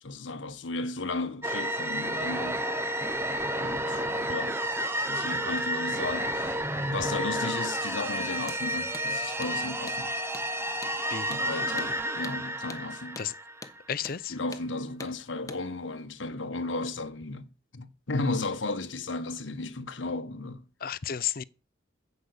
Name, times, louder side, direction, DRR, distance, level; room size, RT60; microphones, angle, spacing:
voice 1, 0.0-2.6 3.6-4.5 5.1-6.6 6.8-10.1 11.3-13.2 14.3-20.6, left 3 dB, 85° left, 1.2 m, -34 dB
sound 1, 1.4-13.9, right 1 dB, 15° right, 0.8 m, -31 dB
Hammer, 8.4-8.6 8.9-9.1 9.4-9.6 9.9-10.0 10.3-10.5 10.8-11.0 11.3-11.5 11.8-11.9 12.2-12.4 12.7-12.8 13.1-13.3 13.6-13.8 14.0-14.2 14.5-14.7 15.0-15.1 15.5-15.6, left 3 dB, 20° left, 1.0 m, -43 dB
voice 2, 13.9-14.3 20.8-21.4, left 9 dB, 50° left, 0.5 m, -32 dB
14.5 x 5.4 x 8.0 m
head